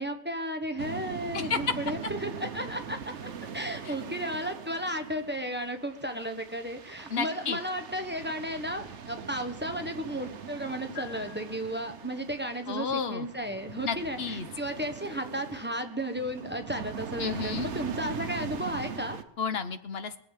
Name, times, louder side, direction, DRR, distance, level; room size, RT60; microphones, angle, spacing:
voice 1, 0.0-19.2, equal, 10° right, 6 dB, 1.2 m, -34 dB
sound 1, 0.8-19.2, right 7 dB, 85° right, 1.3 m, -41 dB
voice 2, 1.3-1.7 3.8-3.9 7.1-7.6 12.7-13.3 13.8-14.5 17.2-17.7 19.4-20.2, left 6 dB, 65° left, 10 dB, 1.3 m, -31 dB
sound 2, 10.9-12.3, left 8 dB, 85° left, 5.2 m, -47 dB
21.0 x 7.8 x 7.4 m, 0.70 s
omnidirectional pair, 1.1 m